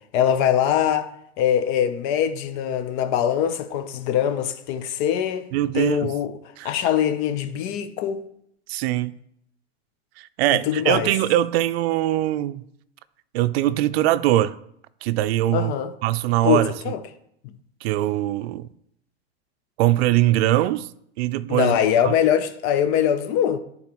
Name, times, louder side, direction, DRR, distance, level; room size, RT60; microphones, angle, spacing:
voice 1, 0.1-1.1 1.4-5.5 5.7-6.3 6.6-8.2 10.7-11.1 15.5-15.9 16.4-17.0 21.5-23.6, left 9 dB, 50° left, 0.7 m, -22 dB
voice 2, 5.5-6.1 6.6-6.7 8.7-9.1 10.2-12.6 13.3-14.5 15.0-15.7 16.0-16.7 17.8-18.7 19.8-20.9 21.2-21.7 22.0-22.1, right 14 dB, 70° right, 0.5 m, -22 dB
11.5 x 3.9 x 3.0 m
supercardioid pair, 120°, 32 cm